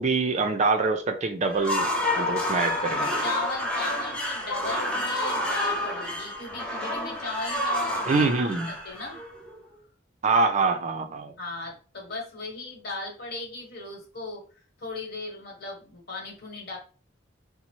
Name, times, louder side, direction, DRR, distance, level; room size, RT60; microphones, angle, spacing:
voice 1, 0.0-1.9 2.2-3.2 8.1-8.7 10.2-11.3, right 4 dB, 35° right, 0.4 m, -25 dB
sound 1, 1.5-9.6, left 1 dB, 5° left, 0.7 m, -29 dB
voice 2, 3.0-8.3 8.6-9.2 11.4-14.4 14.8-16.8, left 3 dB, 55° left, 1.2 m, -37 dB
3.9 x 2.0 x 2.9 m
head